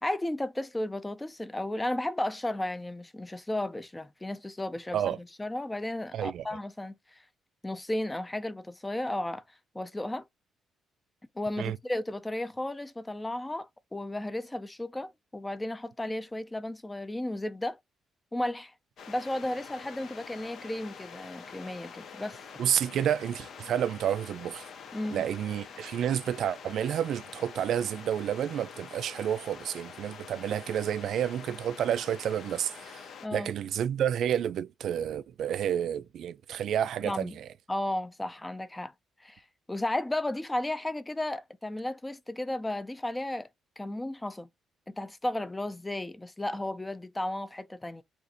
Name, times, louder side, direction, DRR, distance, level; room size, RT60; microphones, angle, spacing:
voice 1, 0.0-7.2 7.6-9.4 9.7-10.2 11.4-17.8 18.3-18.7 19.1-22.4 24.9-25.2 33.2-33.5 37.0-37.4 37.7-38.9 39.2-39.4 39.7-43.5 43.8-44.5 44.9-48.0, left 1 dB, 15° left, 0.5 m, -34 dB
voice 2, 6.1-6.4 11.6-11.8 22.6-24.6 25.1-33.0 33.3-37.5, right 9 dB, 70° right, 0.3 m, -30 dB
sound 1, 19.0-33.3, left 6 dB, 65° left, 0.6 m, -46 dB
2.5 x 2.5 x 4.0 m
cardioid pair, 90°, 0 cm